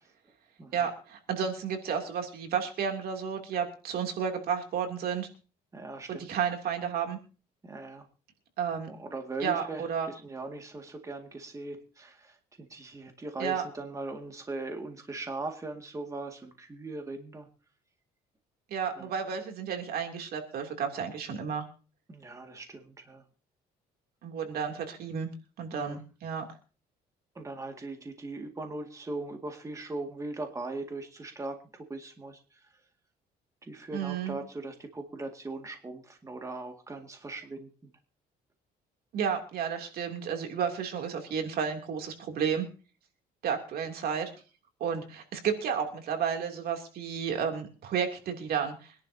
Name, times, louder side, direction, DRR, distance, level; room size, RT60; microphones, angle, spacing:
voice 1, 0.7-5.3 6.1-7.2 8.6-8.9 9.4-10.1 13.4-13.6 18.7-21.6 24.2-25.3 25.6-26.4 33.9-34.4 39.1-42.7 43.4-44.3 44.8-48.9, right 7 dB, 65° right, 4 dB, 2.9 m, -32 dB
voice 2, 5.7-6.3 7.6-8.1 8.9-17.5 19.0-19.1 22.1-23.2 25.7-26.0 27.3-32.7 33.6-37.9, right 2 dB, 20° right, 4 dB, 2.1 m, -40 dB
24.5 x 11.0 x 2.8 m, 0.36 s
cardioid pair, 110°, 17 cm